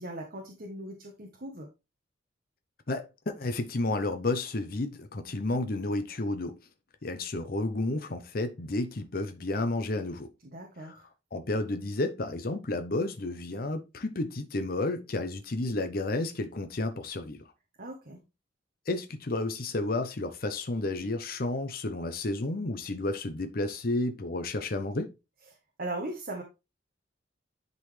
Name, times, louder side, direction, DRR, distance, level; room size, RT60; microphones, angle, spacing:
voice 1, 0.0-1.7 10.4-11.0 17.8-18.2 25.8-26.4, right 1 dB, 50° right, 1.2 m, -38 dB
voice 2, 2.9-6.6 7.0-10.3 10.8-11.0 11.3-17.4 18.9-25.1, left 2 dB, 50° left, 0.7 m, -31 dB
10.5 x 4.0 x 3.2 m
head